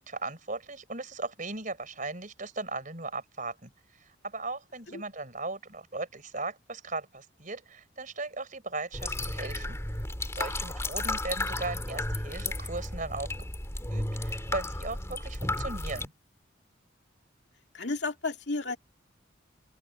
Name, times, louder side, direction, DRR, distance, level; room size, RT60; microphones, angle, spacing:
voice 1, 0.0-3.7 4.0-9.8 10.3-13.3 13.9-16.1, right 3 dB, 45° right, 4.5 m, -37 dB
sound 1, 8.9-16.1, left 1 dB, 15° left, 2.7 m, -33 dB
voice 2, 17.7-18.8, left 3 dB, 60° left, 2.6 m, -32 dB
open air
head